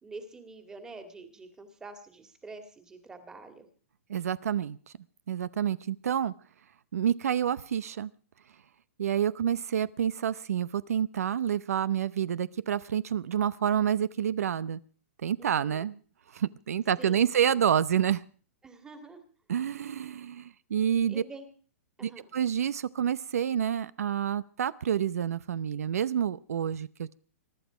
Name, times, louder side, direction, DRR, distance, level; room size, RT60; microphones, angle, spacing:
voice 1, 0.0-3.7 15.4-15.9 17.0-17.3 18.6-19.2 21.1-21.5 22.0-22.2, right 3 dB, 10° right, 7 dB, 2.0 m, -46 dB
voice 2, 4.1-4.8 5.3-6.3 6.9-8.1 9.0-14.8 15.2-16.0 16.3-18.2 19.5-21.2 22.0-27.1, right 9 dB, 80° right, 18 dB, 0.7 m, -28 dB
23.0 x 11.5 x 5.0 m, 0.42 s
hypercardioid pair, 165°, 8 cm